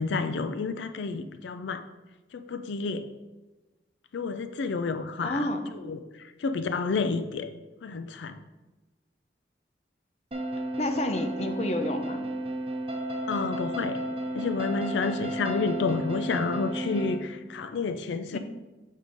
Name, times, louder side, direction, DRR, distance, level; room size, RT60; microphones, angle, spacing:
voice 1, 0.0-1.9 2.3-3.1 4.1-7.5 7.8-8.4 13.3-14.0 14.3-18.4, left 4 dB, 85° left, 10 dB, 0.4 m, -30 dB
voice 2, 5.2-5.6 10.8-12.3 18.3-18.4, left 1 dB, 35° left, 6 dB, 0.6 m, -29 dB
sound 1, 10.3-17.2, right 1 dB, 30° right, 0.8 m, -33 dB
7.3 x 3.6 x 5.0 m, 1.2 s
head